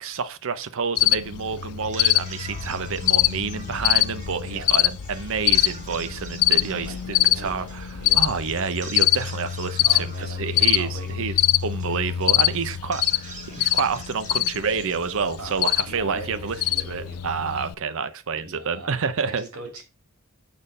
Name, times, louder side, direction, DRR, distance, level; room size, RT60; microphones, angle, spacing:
voice 1, 0.0-7.9 8.1-11.4 11.6-16.6 16.9-19.4, right 5 dB, 65° right, 0.7 m, -28 dB
Cricket, 1.0-17.7, left 15 dB, 75° left, 0.4 m, -24 dB
sound 1, 1.7-17.0, right 4 dB, 35° right, 1.2 m, -45 dB
sound 2, 2.5-8.6, left 1 dB, 5° right, 2.9 m, -41 dB
voice 2, 4.4-4.7 6.4-7.7 8.0-8.2 9.8-11.1 12.4-12.7 13.5-13.8 15.4-17.2 18.3-18.9 19.2-19.8, right 2 dB, 80° right, 2.5 m, -41 dB
7.1 x 4.3 x 5.0 m
head